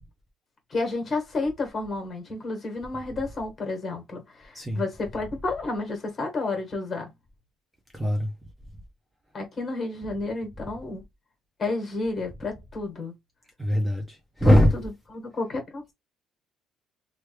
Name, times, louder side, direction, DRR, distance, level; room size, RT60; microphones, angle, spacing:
voice 1, 0.7-7.1 9.3-11.0 11.6-13.1 14.4-14.6 15.1-15.9, left 3 dB, 30° left, 1.4 m, -31 dB
voice 2, 4.5-4.9 7.9-8.3 13.6-14.8 15.3-15.4, equal, 5° right, 0.6 m, -22 dB
3.1 x 2.3 x 3.2 m
cardioid pair, 140°, 0 cm